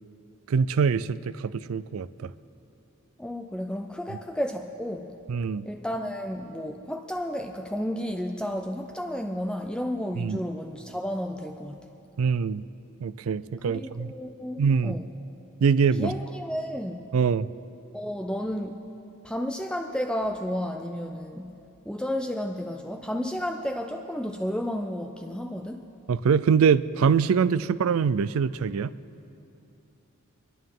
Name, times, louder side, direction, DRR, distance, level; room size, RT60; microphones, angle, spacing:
voice 1, 0.5-2.3 5.3-5.7 10.2-10.4 12.2-12.6 13.0-14.1 14.6-15.0 15.6-16.1 17.1-17.5 26.1-28.9, right 6 dB, 75° right, 17 dB, 0.4 m, -24 dB
voice 2, 3.2-5.1 5.7-11.9 13.7-15.1 16.0-17.0 17.9-18.8 19.2-21.5 21.9-25.8, equal, 5° left, 3 dB, 0.4 m, -32 dB
26.5 x 11.0 x 3.8 m, 2.8 s
head